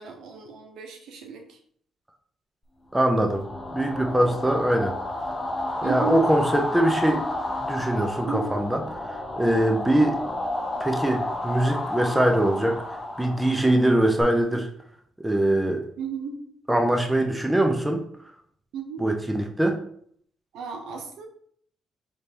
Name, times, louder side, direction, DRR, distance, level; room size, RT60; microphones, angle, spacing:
voice 1, 0.0-1.6 5.8-6.3 8.3-8.5 9.5-9.6 13.8-13.9 16.0-16.4 18.7-19.1 20.5-21.3, right 5 dB, 80° right, 4 dB, 0.8 m, -34 dB
voice 2, 2.9-3.5 3.7-5.0 5.8-7.3 7.6-8.8 9.1-10.2 10.8-14.7 15.2-15.8 16.7-18.0 19.0-19.8, right 1 dB, 10° right, 3 dB, 0.7 m, -22 dB
sound 1, 3.1-14.2, left 1 dB, 15° left, 0.9 m, -31 dB
4.4 x 3.2 x 3.4 m, 0.62 s
cardioid pair, 90°, 0 cm